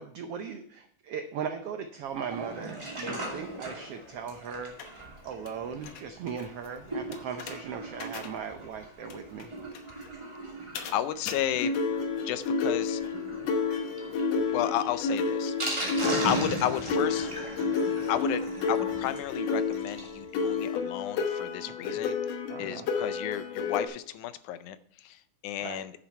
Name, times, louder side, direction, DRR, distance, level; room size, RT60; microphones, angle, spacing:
voice 1, 0.0-4.9 5.2-9.5 21.8-22.0 22.5-22.9 25.6-25.8, right 7 dB, 80° right, 7 dB, 1.3 m, -38 dB
Sink (filling or washing), 2.1-20.2 20.5-20.6 20.8-20.9 21.3-21.4, right 1 dB, 10° right, 2.1 m, -39 dB
sound 1, 4.8-4.9 5.5-5.6 5.8-6.0 6.3-6.4 7.1-7.5 8.0-8.3 9.1-9.2 9.4-9.5 9.7-9.9 10.7-10.9 11.3-11.4 11.6-23.9, left 4 dB, 65° left, 2.1 m, -30 dB
voice 2, 10.9-11.7 12.3-13.0 14.5-15.9 16.2-17.3 18.1-18.4 18.7-22.2 22.6-25.9, left 12 dB, 80° left, 13 dB, 2.0 m, -32 dB
9.8 x 7.3 x 4.2 m, 0.65 s
omnidirectional pair, 3.6 m